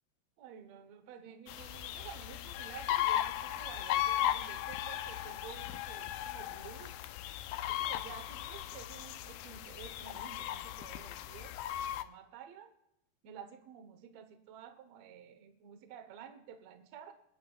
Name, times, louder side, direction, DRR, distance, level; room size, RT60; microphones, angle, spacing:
voice 1, 0.4-7.0 7.7-11.6 11.8-12.7 13.2-17.1, right 8 dB, 70° right, 8 dB, 1.7 m, -51 dB
sound 1, 1.5-12.0, left 12 dB, 80° left, 2.0 m, -37 dB
27.0 x 11.0 x 2.4 m, 0.80 s
omnidirectional pair, 4.4 m